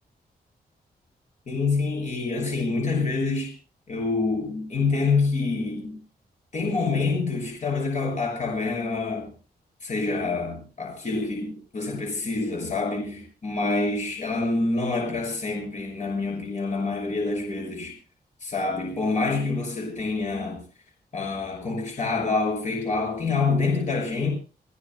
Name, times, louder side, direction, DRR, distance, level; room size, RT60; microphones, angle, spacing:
voice 1, 1.5-3.5 3.9-6.0 6.5-9.3 9.8-17.9 18.4-20.6 21.1-24.3, left 3 dB, 50° left, 6.6 m, -26 dB
29.5 x 16.5 x 2.2 m
wide cardioid pair, 170°, 17 cm